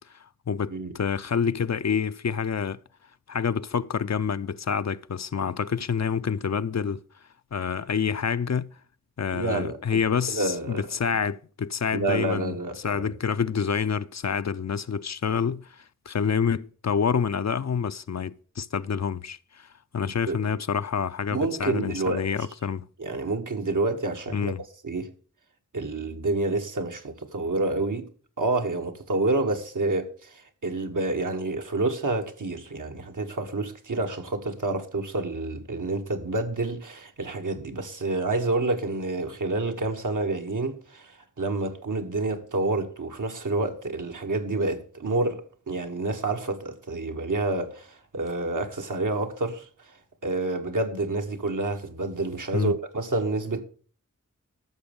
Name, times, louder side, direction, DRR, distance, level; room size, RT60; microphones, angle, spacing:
voice 1, 0.1-2.8 3.3-7.0 7.5-8.7 9.2-12.6 12.8-19.7 19.9-22.9 24.3-24.6 52.5-52.7, left 6 dB, 55° left, 0.5 m, -27 dB
voice 2, 9.3-10.0 10.3-10.9 11.9-13.1 20.0-20.5 21.3-22.3 23.0-24.5 24.8-25.1 25.7-28.1 28.4-49.7 50.2-53.6, right 2 dB, 75° right, 1.4 m, -28 dB
13.5 x 6.2 x 5.3 m
wide cardioid pair, 50°, 32 cm